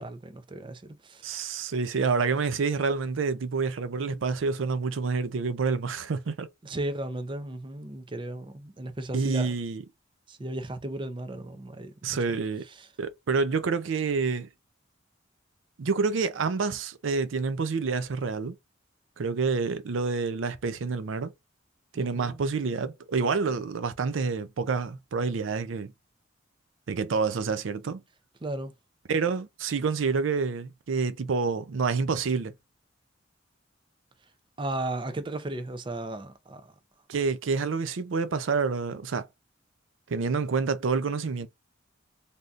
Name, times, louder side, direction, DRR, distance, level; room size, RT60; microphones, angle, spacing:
voice 1, 0.0-1.2 6.6-9.5 10.3-11.9 12.3-12.4 12.7-12.9 22.0-22.4 28.4-28.7 34.6-36.7, right 1 dB, 25° right, 0.5 m, -35 dB
voice 2, 1.2-6.5 9.1-9.8 12.0-12.6 13.0-14.5 15.8-18.5 19.2-21.3 21.9-25.9 26.9-28.0 29.1-32.5 37.1-39.3 40.1-41.5, right 4 dB, 90° right, 0.5 m, -28 dB
3.5 x 2.7 x 2.4 m
head